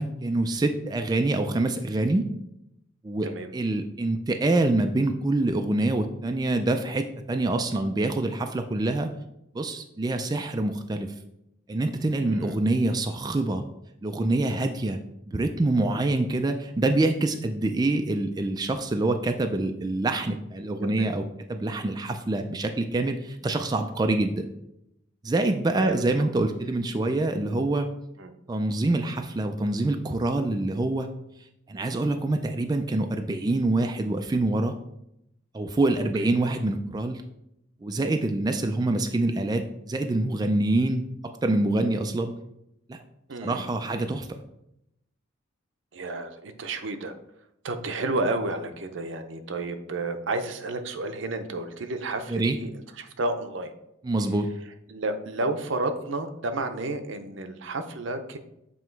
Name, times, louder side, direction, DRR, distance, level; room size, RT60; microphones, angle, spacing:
voice 1, 0.0-2.3 3.0-9.1 9.5-11.1 11.7-13.6 14.0-15.0 15.3-24.5 25.2-27.9 28.5-31.1 31.7-34.7 35.5-37.2 37.8-41.0 41.4-42.3 42.9-43.0 43.4-44.3 52.3-52.6 54.0-54.5, right 2 dB, 20° right, 5 dB, 0.3 m, -26 dB
voice 2, 12.2-12.6 20.8-21.1 25.8-26.0 28.2-28.3 36.2-36.3 43.3-43.6 45.9-47.1 47.6-52.7 53.0-53.7 54.9-58.4, right 2 dB, 75° right, 7 dB, 0.7 m, -31 dB
7.6 x 3.0 x 4.5 m, 0.82 s
head